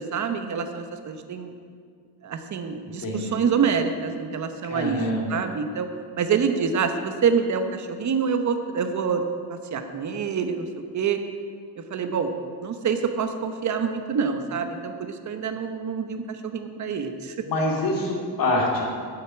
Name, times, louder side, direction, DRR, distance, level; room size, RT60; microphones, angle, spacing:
voice 1, 0.0-1.5 2.2-5.0 5.3-5.9 6.2-9.2 9.5-10.7 10.9-11.2 11.8-12.3 12.6-17.4, right 6 dB, 40° right, 7 dB, 1.0 m, -26 dB
voice 2, 3.0-3.4 4.7-5.4 17.4-18.8, left 1 dB, 50° left, -1 dB, 2.6 m, -25 dB
9.2 x 8.1 x 8.5 m, 2.1 s
cardioid pair, 170°, 43 cm